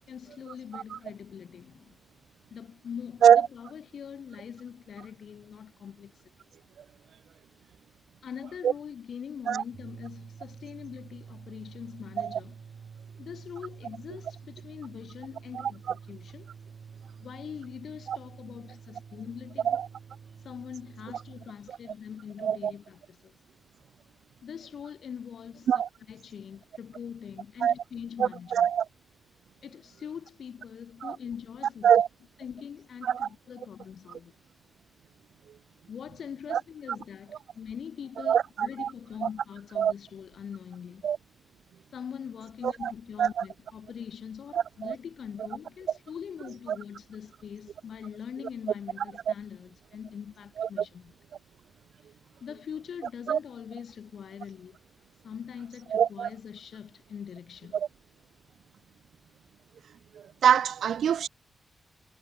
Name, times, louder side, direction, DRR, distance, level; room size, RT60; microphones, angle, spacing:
voice 1, 0.1-2.0 2.5-6.1 8.2-12.5 13.2-16.5 17.2-19.8 20.4-23.3 24.4-25.8 26.1-28.7 29.6-31.9 32.4-34.3 35.9-41.1 41.9-51.1 52.4-54.8 55.2-57.8, left 7 dB, 75° left, 2.7 m, -42 dB
sound 1, 9.6-21.5, right 6 dB, 60° right, 2.8 m, -48 dB
voice 2, 22.4-22.7 25.7-25.9 27.6-27.7 28.2-28.9 31.0-31.2 31.8-32.1 33.0-33.3 36.5-36.6 38.3-38.9 39.2-39.3 39.8-39.9 41.0-41.2 42.6-42.9 43.2-43.4 44.5-45.0 46.7-46.8 50.6-50.8 53.3-53.4 55.9-56.3 57.7-57.9 60.1-61.3, right 9 dB, 85° right, 0.7 m, -24 dB
cardioid pair, 95°, 0 cm